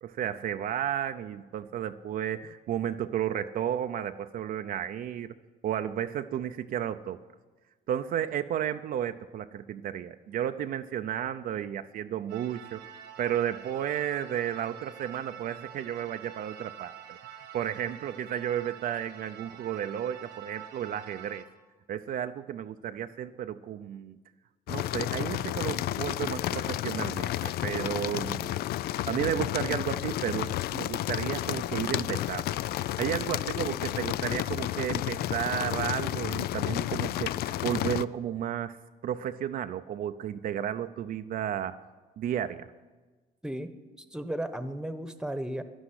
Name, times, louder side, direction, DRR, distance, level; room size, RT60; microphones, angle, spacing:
voice 1, 0.0-5.3 5.6-7.2 7.9-12.8 13.2-17.2 17.5-21.4 21.9-24.2 24.7-28.6 28.9-32.5 33.0-38.8 39.0-41.8 42.2-42.7, right 10 dB, 55° right, 8 dB, 0.6 m, -33 dB
sound 1, 12.3-21.4, right 10 dB, 85° right, 1.8 m, -47 dB
sound 2, 24.7-38.1, left 14 dB, 65° left, 0.4 m, -31 dB
voice 2, 43.4-45.6, right 1 dB, 5° right, 10 dB, 1.1 m, -35 dB
12.5 x 11.5 x 9.8 m, 1.3 s
cardioid pair, 110°, 17 cm